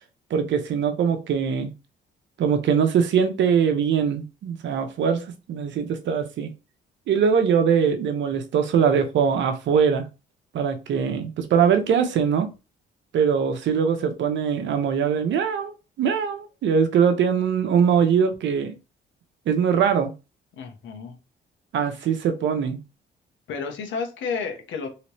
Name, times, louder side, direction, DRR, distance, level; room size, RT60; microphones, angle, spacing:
voice 1, 0.3-1.7 2.4-6.5 7.1-10.1 10.5-12.5 13.1-15.7 16.0-18.7 19.5-20.1 21.7-22.8, right 7 dB, 70° right, 0.8 m, -22 dB
voice 2, 20.6-21.2 23.5-24.9, left 5 dB, 70° left, 1.1 m, -31 dB
3.2 x 3.0 x 3.0 m
cardioid pair, 90°, 20 cm